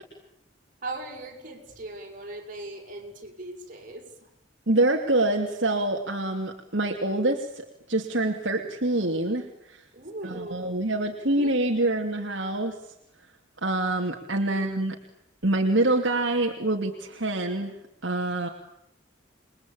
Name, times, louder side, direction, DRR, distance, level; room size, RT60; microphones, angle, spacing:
voice 1, 0.8-4.3 9.9-10.8 11.2-11.5 11.8-12.0 14.5-14.6, right 2 dB, 40° right, 1 dB, 7.2 m, -39 dB
voice 2, 4.7-9.8 10.2-12.8 13.6-15.0 15.4-17.7 18.0-18.5, right 2 dB, 65° right, 2 dB, 2.7 m, -26 dB
29.0 x 22.5 x 8.8 m, 0.79 s
head